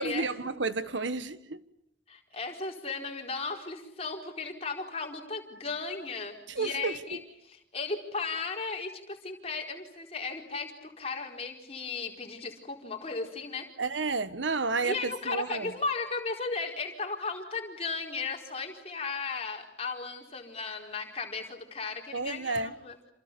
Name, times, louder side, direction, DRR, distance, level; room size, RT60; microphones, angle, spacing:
voice 1, 0.0-1.6 6.5-7.2 13.8-15.7 22.1-22.7, right 3 dB, 90° right, 1.4 m, -31 dB
voice 2, 2.1-13.7 14.8-23.1, left 4 dB, 35° left, 4.4 m, -36 dB
28.5 x 27.5 x 6.9 m
head